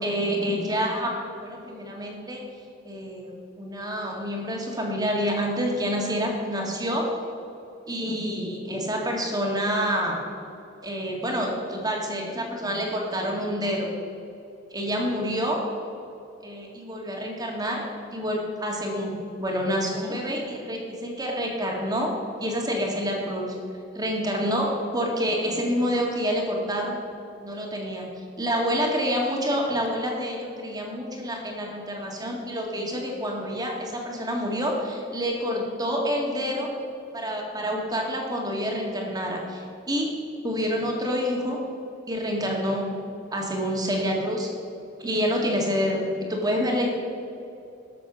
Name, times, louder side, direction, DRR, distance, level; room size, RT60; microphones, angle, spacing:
voice 1, 0.0-2.4 2.8-7.1 7.9-10.2 10.8-13.9 14.7-15.6 16.4-17.8 18.1-19.1 19.4-22.1 22.4-23.5 24.0-24.7 24.9-27.0 27.4-28.1 28.4-36.7 37.1-40.1 40.4-41.6 42.1-42.9 43.3-44.5 45.0-46.9, equal, 20° right, 0 dB, 2.0 m, -27 dB
13.0 x 6.9 x 6.2 m, 2.6 s
head